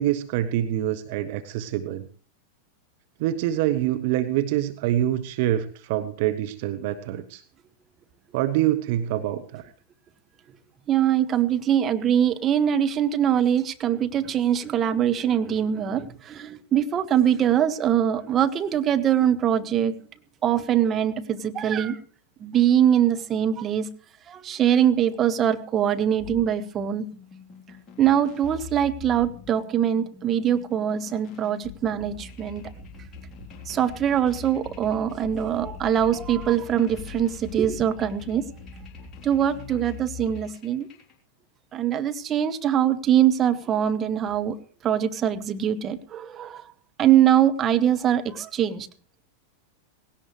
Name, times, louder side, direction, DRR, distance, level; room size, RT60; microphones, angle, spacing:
voice 1, 0.0-2.1 3.2-7.4 8.3-9.7, right 12 dB, 50° right, 11 dB, 0.8 m, -25 dB
voice 2, 10.9-19.9 20.4-22.0 22.4-23.9 24.3-27.0 28.0-32.6 33.7-38.4 39.2-40.9 41.7-44.6 44.8-46.6 47.0-48.9, right 10 dB, 25° right, 9 dB, 1.1 m, -23 dB
sound 1, 26.2-41.1, left 5 dB, 20° left, 3.5 m, -43 dB
18.0 x 17.0 x 3.2 m, 0.41 s
figure-of-eight pair, 90°, 0 cm